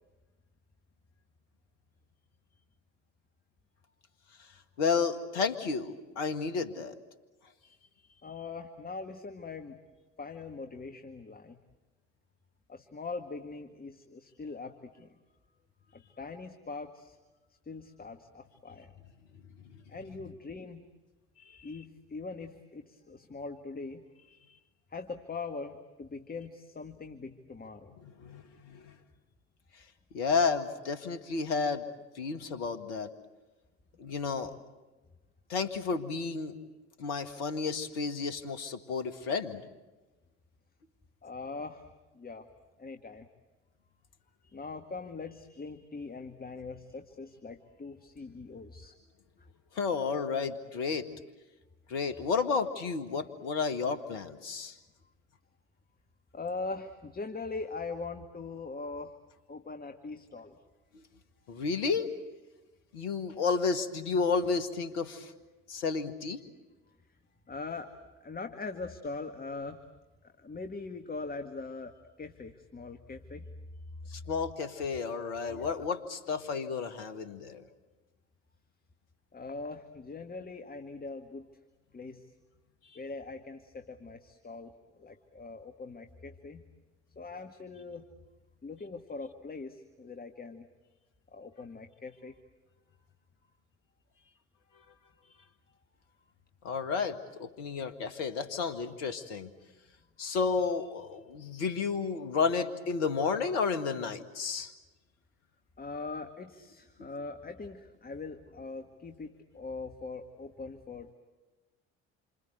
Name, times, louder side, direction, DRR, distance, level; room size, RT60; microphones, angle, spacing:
voice 1, 4.8-6.9 28.2-28.8 30.1-31.9 32.2-33.1 34.0-34.5 35.5-36.6 37.0-39.6 49.8-51.1 51.9-54.7 61.5-62.1 62.9-65.3 65.7-66.4 74.1-77.6 96.6-99.5 100.2-104.7, left 5 dB, 70° left, 9 dB, 2.0 m, -31 dB
voice 2, 8.2-9.8 10.2-11.6 12.7-15.2 15.9-17.2 17.5-18.9 19.9-20.8 21.6-24.0 24.9-28.0 41.2-41.9 42.1-42.5 42.8-43.3 44.4-49.0 56.3-59.1 59.5-60.6 67.5-67.9 68.2-69.8 70.2-73.5 75.5-75.9 79.3-81.5 81.9-82.3 82.9-84.7 85.0-86.6 87.2-88.1 88.6-90.7 91.3-92.4 105.8-111.1, left 3 dB, 25° left, 6 dB, 1.9 m, -42 dB
28.0 x 26.0 x 8.0 m, 1.2 s
figure-of-eight pair, 55°, 36 cm